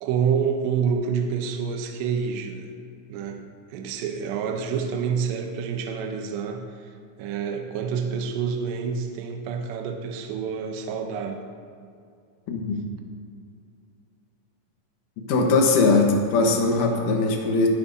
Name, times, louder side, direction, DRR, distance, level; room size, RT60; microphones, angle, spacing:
voice 1, 0.0-2.7 3.1-3.4 3.7-6.9 7.2-11.4 16.8-17.0, right 6 dB, 80° right, 3 dB, 2.8 m, -28 dB
voice 2, 15.3-17.7, left 3 dB, 75° left, 1 dB, 1.8 m, -20 dB
19.5 x 11.0 x 2.7 m, 2.3 s
omnidirectional pair, 5.4 m